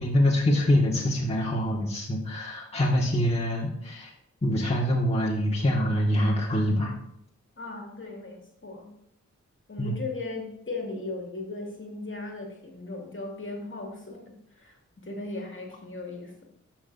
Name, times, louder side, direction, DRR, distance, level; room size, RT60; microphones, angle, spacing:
voice 1, 0.0-4.1 4.4-6.9 9.8-10.0, equal, 20° left, -5 dB, 1.8 m, -25 dB
voice 2, 7.6-8.9 9.7-16.4, left 3 dB, 40° left, 0 dB, 2.3 m, -37 dB
12.0 x 6.0 x 2.7 m, 0.77 s
cardioid pair, 45°, 30 cm